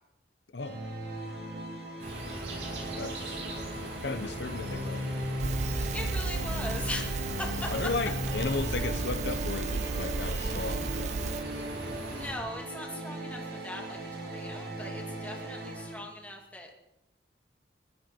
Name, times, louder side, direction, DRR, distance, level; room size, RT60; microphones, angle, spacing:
sound 1, 0.6-16.0, equal, 60° right, 3.2 m, -37 dB
sound 2, 2.0-12.3, right 1 dB, 90° right, 5.1 m, -41 dB
voice 1, 3.0-3.4 4.0-5.0 7.7-11.4, left 3 dB, 80° left, 0.7 m, -35 dB
Crackle, 5.4-11.4, right 4 dB, 40° right, 0.4 m, -34 dB
voice 2, 5.7-7.7 11.9-16.7, left 1 dB, 10° left, 2.3 m, -40 dB
19.5 x 12.0 x 4.4 m
head